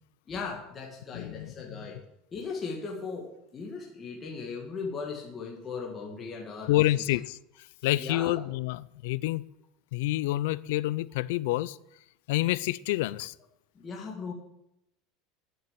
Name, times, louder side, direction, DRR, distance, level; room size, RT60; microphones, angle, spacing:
voice 1, 0.3-2.0 2.3-6.8 8.0-8.3 13.7-14.3, left 4 dB, 20° left, 1.6 m, -38 dB
voice 2, 1.1-1.5 6.7-7.4 7.8-9.5 9.9-11.8 12.3-13.3, left 16 dB, 75° left, 0.4 m, -28 dB
9.5 x 7.4 x 8.7 m
cardioid pair, 175°, 0 cm